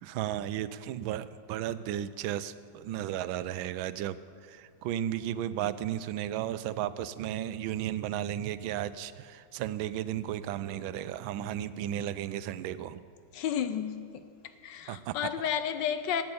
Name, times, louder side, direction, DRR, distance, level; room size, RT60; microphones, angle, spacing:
voice 1, 0.0-13.0 14.9-15.1, right 11 dB, 80° right, 1.3 m, -34 dB
voice 2, 13.3-14.2 14.6-16.2, left 8 dB, 70° left, 1.2 m, -32 dB
12.5 x 8.9 x 8.6 m
omnidirectional pair, 2.2 m